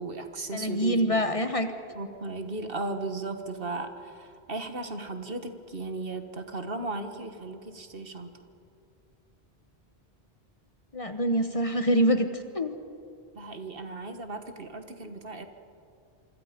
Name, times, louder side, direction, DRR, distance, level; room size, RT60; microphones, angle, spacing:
voice 1, 0.0-1.2 1.9-8.3 11.5-11.6 13.3-15.5, right 3 dB, 60° right, 7 dB, 1.7 m, -36 dB
voice 2, 0.5-1.7 10.9-12.7, equal, 35° left, 8 dB, 1.2 m, -25 dB
26.5 x 25.0 x 5.2 m, 2.5 s
omnidirectional pair, 1.1 m